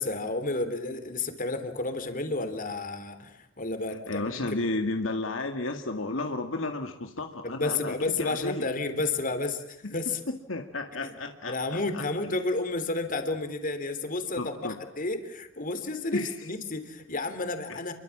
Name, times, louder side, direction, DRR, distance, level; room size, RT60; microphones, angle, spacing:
voice 1, 0.0-4.8 7.4-10.2 11.0-11.1 11.5-17.9, left 2 dB, 45° left, 8 dB, 3.5 m, -31 dB
voice 2, 4.1-8.6 9.8-9.9 10.5-11.6 11.9-12.0 14.4-14.8 16.1-16.5 17.7-17.8, left 2 dB, 75° left, 5 dB, 2.0 m, -32 dB
29.5 x 24.0 x 7.4 m, 0.78 s
head